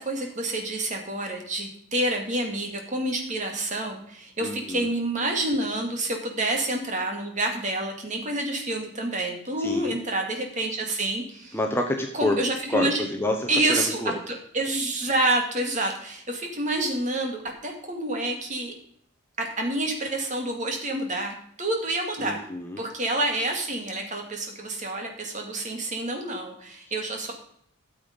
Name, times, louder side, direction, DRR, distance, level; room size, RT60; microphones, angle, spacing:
voice 1, 0.0-11.6 12.1-13.1 13.5-18.7 19.4-22.4 22.8-27.3, right 2 dB, 35° right, 2 dB, 2.2 m, -28 dB
voice 2, 4.4-4.9 9.6-10.0 11.5-12.4 12.7-14.2 22.2-22.8, left 1 dB, 10° left, 2 dB, 1.0 m, -28 dB
13.0 x 7.1 x 5.2 m, 0.64 s
head